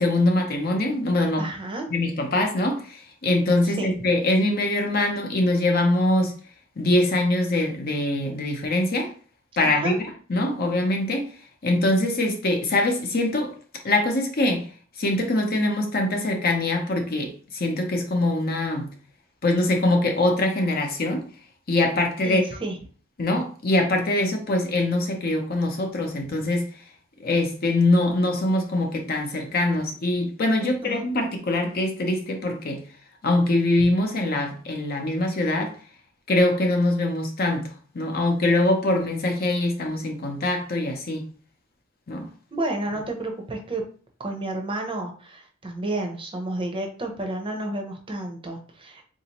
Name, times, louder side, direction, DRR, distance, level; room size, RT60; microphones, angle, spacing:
voice 1, 0.0-1.5 1.9-6.3 6.8-9.1 9.6-10.0 10.3-11.3 11.6-13.5 13.8-14.7 15.0-18.9 19.4-21.2 21.7-22.4 23.2-26.7 27.2-32.8 33.2-35.7 36.3-41.2 42.1-42.3, left 2 dB, 50° left, 3 dB, 0.7 m, -23 dB
voice 2, 1.4-1.9 3.7-3.9 9.6-9.9 22.2-22.8 30.6-31.0 42.5-43.8 44.2-49.0, right 2 dB, 25° right, 3 dB, 0.6 m, -31 dB
3.9 x 2.7 x 2.9 m, 0.41 s
head